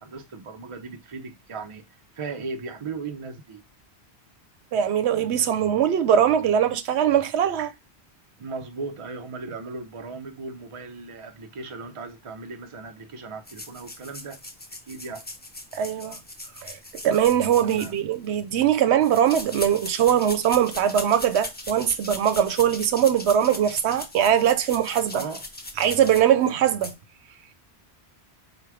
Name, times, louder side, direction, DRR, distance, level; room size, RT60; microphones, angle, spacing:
voice 1, 0.0-1.8 2.1-3.6 8.4-14.4 14.9-15.3 17.6-17.9 25.1-25.4, right 4 dB, 35° right, 0.6 m, -37 dB
voice 2, 4.7-7.7 15.7-16.2 16.6-16.8 17.0-25.2 25.8-26.9, right 9 dB, 90° right, 0.9 m, -21 dB
sound 1, 13.5-18.4 19.0-26.5 26.8-26.9, left 2 dB, 15° left, 0.4 m, -39 dB
4.5 x 2.2 x 4.7 m
omnidirectional pair, 1.1 m